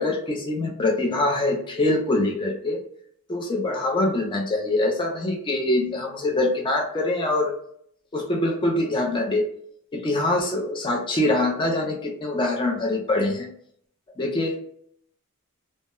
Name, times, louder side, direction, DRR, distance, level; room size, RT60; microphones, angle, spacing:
voice 1, 0.0-2.8 3.3-7.6 8.1-9.5 9.9-13.5 14.2-14.6, left 2 dB, 20° left, 0 dB, 0.4 m, -24 dB
2.2 x 2.1 x 2.9 m, 0.66 s
head